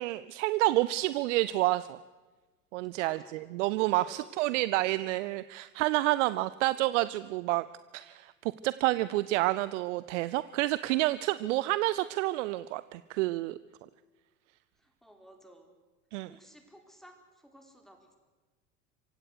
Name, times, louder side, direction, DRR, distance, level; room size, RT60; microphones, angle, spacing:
voice 1, 0.0-2.0 2.7-7.6 7.9-13.6 16.1-16.3, right 18 dB, 65° right, 16 dB, 0.7 m, -29 dB
voice 2, 3.0-3.4 4.0-4.7 14.8-15.7 16.3-18.2, right 1 dB, ahead, 4 dB, 4.3 m, -56 dB
27.0 x 16.0 x 6.5 m, 1.3 s
figure-of-eight pair, 75°, 40 cm